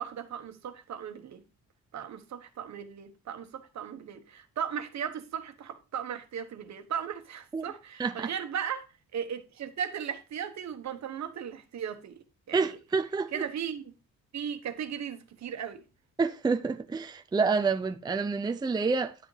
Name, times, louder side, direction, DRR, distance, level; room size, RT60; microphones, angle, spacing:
voice 1, 0.0-1.4 1.9-8.9 9.1-12.2 12.5-12.8 13.3-13.9 14.3-15.8, right 8 dB, 70° right, 1.2 m, -37 dB
voice 2, 8.0-8.3 12.5-13.5 16.2-19.2, right 4 dB, 15° right, 0.5 m, -28 dB
9.9 x 9.8 x 3.3 m
wide cardioid pair, 140°, 29 cm